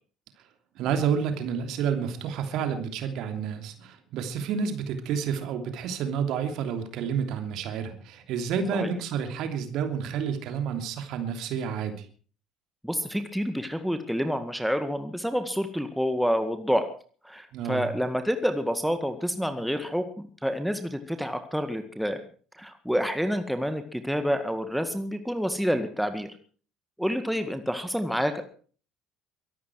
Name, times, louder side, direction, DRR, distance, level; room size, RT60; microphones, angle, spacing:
voice 1, 0.7-12.0 17.5-17.9, right 7 dB, 50° right, 6 dB, 3.0 m, -30 dB
voice 2, 12.8-16.9 17.2-20.1 20.4-22.2 22.5-26.3 27.0-28.4, equal, ahead, 8 dB, 1.9 m, -28 dB
23.0 x 12.0 x 4.8 m, 0.43 s
figure-of-eight pair, 60°, 0 cm